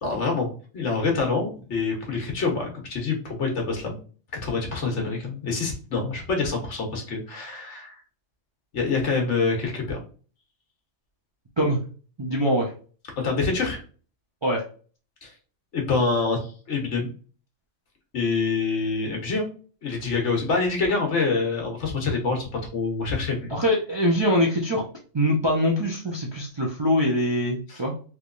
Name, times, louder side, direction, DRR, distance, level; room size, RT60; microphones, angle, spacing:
voice 1, 0.0-4.0 4.4-8.0 8.7-10.0 13.2-13.8 15.2-15.3 15.7-17.1 18.1-19.5 19.8-23.6 27.7-27.8, left 4 dB, 65° left, 1 dB, 1.3 m, -26 dB
voice 2, 12.2-12.7 14.4-14.6 23.5-24.8 25.1-27.9, equal, 35° right, -2 dB, 0.5 m, -23 dB
3.4 x 3.0 x 2.5 m, 0.39 s
omnidirectional pair, 1.3 m